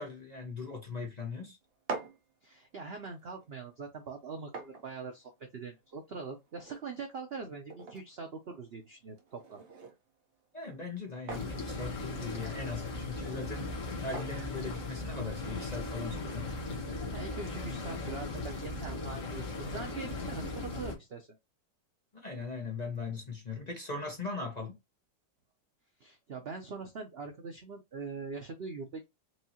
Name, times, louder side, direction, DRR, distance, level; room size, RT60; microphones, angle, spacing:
voice 1, 0.0-1.6 10.5-13.7 14.0-16.5 22.1-24.7, left 4 dB, 30° left, 0.9 m, -39 dB
sound 1, 1.6-15.5, right 4 dB, 50° right, 0.8 m, -48 dB
voice 2, 2.4-9.6 17.1-21.3 26.0-29.0, right 4 dB, 75° right, 0.5 m, -43 dB
sound 2, 11.3-20.9, left 2 dB, 45° left, 1.5 m, -38 dB
4.6 x 2.7 x 2.8 m
omnidirectional pair, 2.0 m